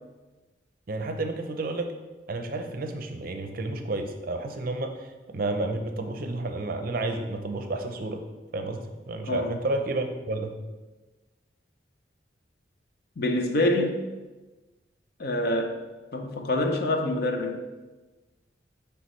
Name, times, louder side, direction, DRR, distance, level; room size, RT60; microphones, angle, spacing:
voice 1, 0.9-1.9 2.3-4.9 5.3-8.2 8.5-8.8 9.1-10.5, right 2 dB, 50° right, 0.5 m, -31 dB
voice 2, 9.3-9.6 13.2-14.0 15.2-15.8 16.1-17.6, left 1 dB, 55° left, 0.6 m, -26 dB
9.4 x 3.4 x 3.1 m
head